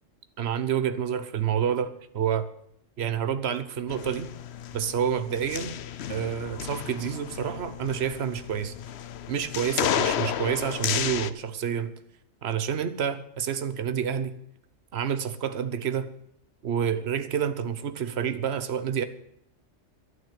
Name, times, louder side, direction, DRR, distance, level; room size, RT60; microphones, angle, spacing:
voice 1, 0.4-2.5 3.0-4.3 4.7-5.8 6.1-8.7 9.3-11.9 12.4-14.4 14.9-16.1 16.6-19.0, right 8 dB, 55° right, 11 dB, 1.2 m, -28 dB
sound 1, 3.9-11.3, left 9 dB, 60° left, 0.9 m, -32 dB
11.0 x 9.6 x 8.8 m, 0.74 s
omnidirectional pair, 1.3 m